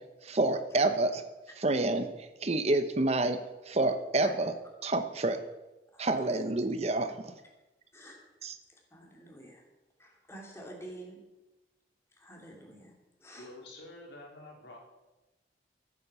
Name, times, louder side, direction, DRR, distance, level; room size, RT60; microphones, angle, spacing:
voice 1, 0.2-1.2 1.6-4.5 4.8-5.4 6.0-7.3 8.4-8.5, right 2 dB, 35° right, 9 dB, 0.9 m, -28 dB
voice 2, 7.9-8.3 8.7-9.6 10.0-11.2 12.2-12.9 13.2-13.6, right 1 dB, 15° left, -1 dB, 3.1 m, -49 dB
voice 3, 13.4-14.8, left 2 dB, 85° left, -1 dB, 3.8 m, -48 dB
14.0 x 8.8 x 6.9 m, 1.1 s
head